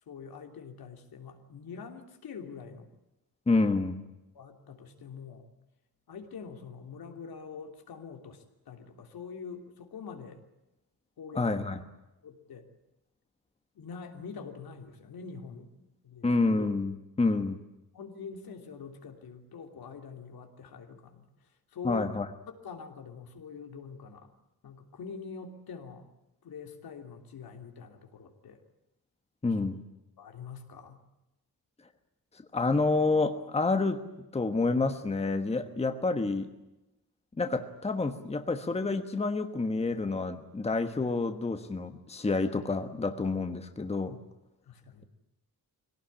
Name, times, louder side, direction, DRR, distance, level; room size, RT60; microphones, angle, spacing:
voice 1, 0.1-2.9 4.3-5.5 6.1-10.4 11.2-11.5 12.2-12.7 13.7-15.7 16.0-16.3 17.9-22.1 22.6-24.3 24.6-26.1 26.4-28.6 29.5-29.6 30.2-31.0 44.6-45.1, left 5 dB, 85° left, 4 dB, 3.2 m, -45 dB
voice 2, 3.5-4.0 11.3-11.8 16.2-17.6 21.8-22.2 29.4-29.8 32.5-36.5 37.4-44.2, left 3 dB, 15° left, 7 dB, 1.3 m, -28 dB
23.0 x 17.5 x 9.9 m, 0.96 s
wide cardioid pair, 170°, 36 cm